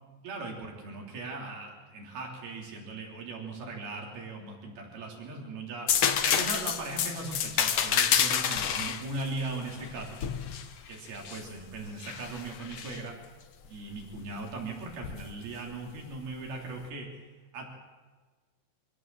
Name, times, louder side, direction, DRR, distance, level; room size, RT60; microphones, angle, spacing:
voice 1, 0.2-10.2 10.9-13.2 13.6-17.3 17.5-17.7, right 3 dB, 90° right, 0 dB, 5.3 m, -39 dB
sound 1, 5.9-11.5 12.0-13.0 15.0-15.2, left 8 dB, 75° left, 1.3 m, -28 dB
25.0 x 16.0 x 7.6 m, 1.4 s
omnidirectional pair, 4.2 m